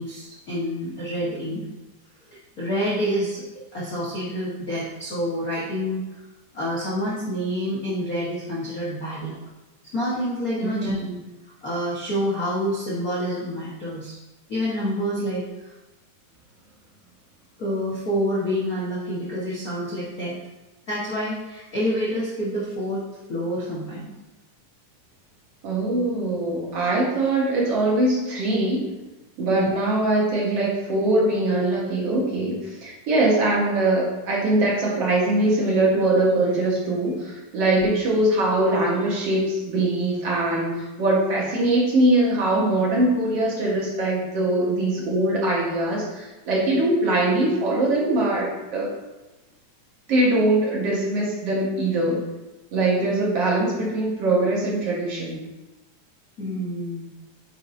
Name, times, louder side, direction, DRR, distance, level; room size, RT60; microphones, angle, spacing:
voice 1, 0.0-1.6 2.6-3.4 3.7-6.0 6.5-9.4 9.8-11.0 11.6-14.2 14.5-15.7 17.6-20.4 20.9-23.0 23.3-24.1 29.5-29.7 37.7-37.9 56.4-57.1, equal, 55° left, -7 dB, 1.0 m, -27 dB
voice 2, 10.6-11.1 15.2-15.3 25.6-28.9 29.4-48.9 50.1-52.2 52.7-55.4, right 2 dB, 55° right, -3 dB, 2.1 m, -22 dB
9.0 x 5.3 x 2.6 m, 1.1 s
omnidirectional pair, 3.5 m